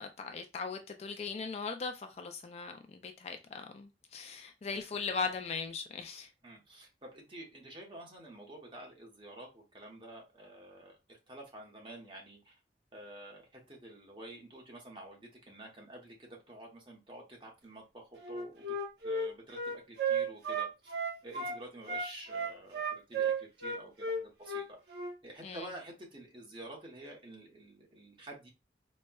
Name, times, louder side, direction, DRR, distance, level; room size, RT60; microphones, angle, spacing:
voice 1, 0.0-6.3 25.4-25.7, left 4 dB, 35° left, 0.3 m, -39 dB
voice 2, 6.4-10.9 11.3-12.5 12.9-18.7 19.0-20.9 21.2-24.8 25.2-28.5, right 1 dB, 30° right, 0.9 m, -49 dB
Wind instrument woodwind instrument, 18.2-21.6 21.9-25.1, right 4 dB, 75° right, 0.8 m, -34 dB
4.1 x 2.2 x 2.2 m
head